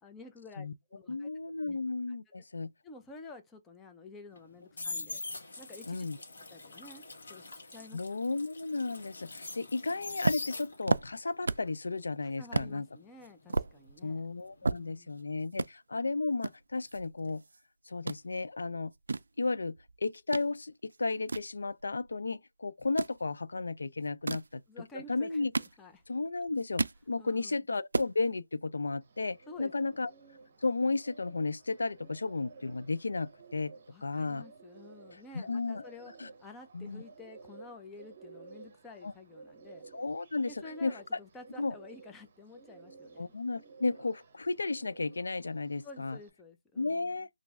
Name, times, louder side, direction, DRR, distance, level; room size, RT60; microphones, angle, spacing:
voice 1, 0.0-1.3 1.6-1.8 2.3-2.4 2.8-5.2 5.6-6.1 6.5-7.0 7.3-8.0 12.2-14.2 14.6-15.1 24.3-24.4 24.7-25.5 25.8-26.0 27.2-27.6 29.5-30.0 33.9-36.1 36.4-39.9 40.5-43.3 45.8-47.1, left 3 dB, 5° left, 0.4 m, -51 dB
voice 2, 1.1-2.7 5.9-6.2 7.9-12.9 14.0-17.4 17.9-18.9 19.4-24.6 24.9-25.5 26.1-30.1 30.6-33.7 34.0-34.5 35.1-35.9 36.2-36.3 36.7-37.0 39.0-39.1 39.9-41.2 41.6-41.7 43.2-46.2 46.8-47.3, left 3 dB, 80° left, 0.4 m, -34 dB
sound 1, 4.3-11.1 11.4-14.3 14.6-14.9, left 3 dB, 65° left, 1.4 m, -43 dB
sound 2, 10.2-11.8 12.1-12.2 12.5-12.7 13.2-15.2 15.5-15.7 16.4-17.6 17.9-18.2 18.8-20.5 20.9-22.2 22.8-23.2 24.0-24.5 25.2-26.2 26.5-27.0 27.4-27.5 27.7-28.1, right 3 dB, 80° right, 0.3 m, -33 dB
Bird, 29.0-46.3, right 4 dB, 30° right, 0.9 m, -55 dB
3.1 x 2.5 x 3.5 m
hypercardioid pair, 175°, 0 cm